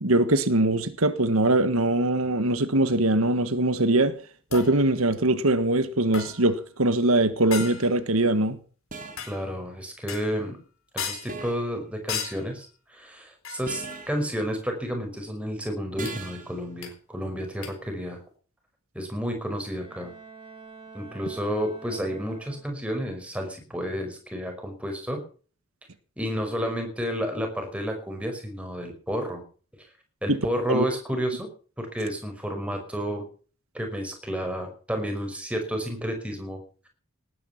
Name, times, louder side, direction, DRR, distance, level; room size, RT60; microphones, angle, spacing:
voice 1, 0.0-4.2 4.5-8.6 30.3-30.4 30.7-30.8, right 2 dB, 80° right, 1.6 m, -22 dB
sound 1, 4.5-4.8 6.1-6.6 7.5-8.0 9.2-9.5 10.1-10.5 11.0-11.4 12.1-12.5 13.4-13.8 16.1-16.2 16.8-16.9 17.6-17.7, left 6 dB, 75° left, 4.1 m, -35 dB
sound 2, 7.7-7.9 8.9-9.4 11.3-11.8 13.7-14.3 16.0-16.6, right 3 dB, 40° right, 2.5 m, -39 dB
voice 2, 9.3-10.6 10.9-18.2 18.9-20.1 20.9-25.2 26.2-29.4 30.2-31.5 31.8-33.2 33.7-36.9, equal, 5° right, 5.3 m, -31 dB
Bowed string instrument, 19.6-23.0, right 5 dB, 25° right, 5.4 m, -47 dB
19.0 x 10.5 x 5.9 m
head